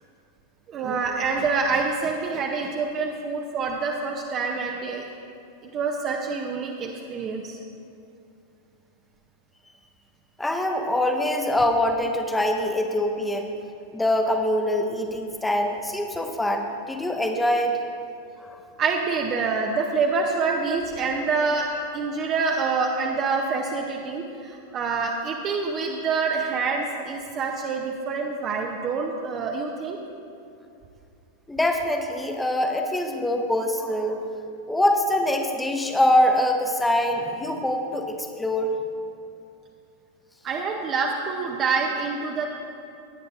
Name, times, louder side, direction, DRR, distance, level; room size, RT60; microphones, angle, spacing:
voice 1, 0.7-5.1 5.6-7.6 18.8-21.7 21.9-30.0 40.4-42.5, right 4 dB, 30° right, 1 dB, 0.7 m, -26 dB
voice 2, 10.4-13.5 13.9-17.8 18.4-18.6 31.5-34.3 34.7-38.8, left 1 dB, 5° left, 4 dB, 1.0 m, -24 dB
17.5 x 9.1 x 2.5 m, 2.6 s
figure-of-eight pair, 90°, 0 cm